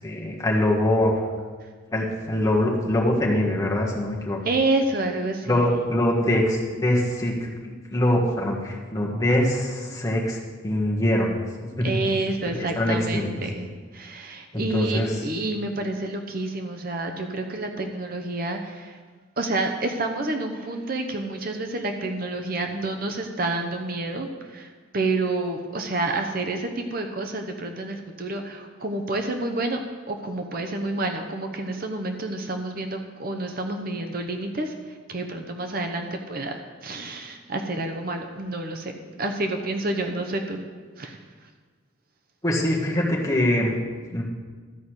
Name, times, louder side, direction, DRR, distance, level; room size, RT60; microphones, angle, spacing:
voice 1, 0.0-1.1 1.9-4.4 5.5-10.4 10.6-11.4 11.8-11.9 12.5-13.3 14.5-15.1 42.4-43.8 44.1-44.2, left 1 dB, 15° left, -3 dB, 1.6 m, -23 dB
voice 2, 4.4-5.6 11.8-13.7 13.9-19.0 19.4-29.8 30.1-38.9 39.2-40.6 41.0-41.2, right 2 dB, 45° right, 4 dB, 0.8 m, -29 dB
13.0 x 5.5 x 8.0 m, 1.5 s
head